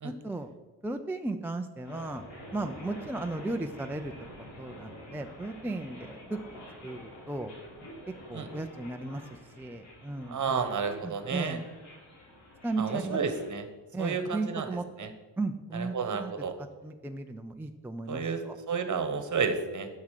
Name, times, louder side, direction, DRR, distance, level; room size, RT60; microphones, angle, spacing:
voice 1, 0.0-0.5 0.8-2.2 2.5-4.1 4.4-6.4 6.8-7.0 7.3-7.5 8.3-10.5 11.0-11.6 12.6-13.2 13.9-14.9 15.4-15.9 16.2-16.3 16.8-18.6, right 2 dB, 5° right, 5 dB, 0.4 m, -35 dB
sound 1, 1.8-13.5, equal, 85° left, 3.9 m, -48 dB
voice 2, 10.3-11.6 12.8-13.6 14.0-15.1 15.7-16.6 18.1-19.9, right 5 dB, 45° right, 9 dB, 1.3 m, -31 dB
9.4 x 7.5 x 6.6 m, 1.3 s
wide cardioid pair, 135°, 43 cm